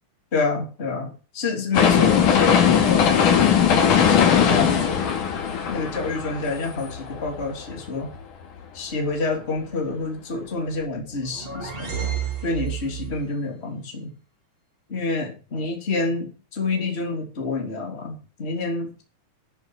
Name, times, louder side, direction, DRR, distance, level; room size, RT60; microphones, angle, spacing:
voice 1, 0.3-3.2 3.7-5.2 5.7-8.1 8.7-12.1 12.4-14.2 14.9-19.0, left 3 dB, 20° left, 3.3 m, -28 dB
sound 1, 1.7-7.7 8.1-8.2, left 8 dB, 80° left, 3.5 m, -19 dB
sound 2, 10.9-13.2, right 9 dB, 55° right, 4.5 m, -31 dB
11.0 x 10.5 x 4.9 m
omnidirectional pair, 3.6 m